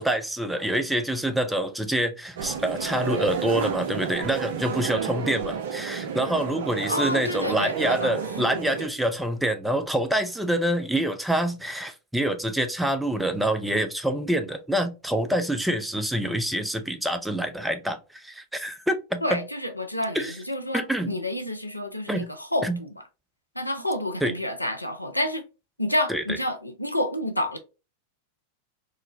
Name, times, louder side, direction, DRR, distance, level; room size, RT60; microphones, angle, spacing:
voice 1, 0.0-19.4 20.1-20.3 20.7-21.2 22.1-22.3 22.6-22.8 24.2-24.3 26.1-26.2, right 1 dB, 5° right, 0.5 m, -26 dB
sound 1, 2.4-8.9, right 6 dB, 55° right, 0.5 m, -31 dB
voice 2, 6.9-8.1 19.2-23.0 23.6-25.4 25.8-27.6, left 1 dB, 85° left, 0.5 m, -29 dB
3.8 x 2.0 x 2.5 m
figure-of-eight pair, 90°, 0 cm